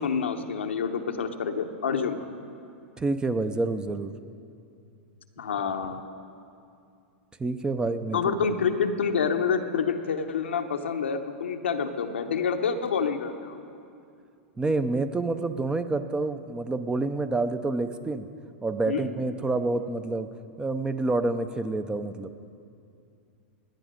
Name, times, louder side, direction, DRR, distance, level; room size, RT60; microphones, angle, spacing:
voice 1, 0.0-2.2 5.4-6.0 8.1-13.6 18.9-19.1, left 6 dB, 90° left, 5 dB, 0.9 m, -27 dB
voice 2, 3.0-4.1 7.4-8.3 14.6-18.3 18.6-20.3 20.6-22.3, right 3 dB, 15° right, 11 dB, 0.6 m, -28 dB
17.0 x 10.0 x 5.2 m, 2.5 s
hypercardioid pair, 115°, 6 cm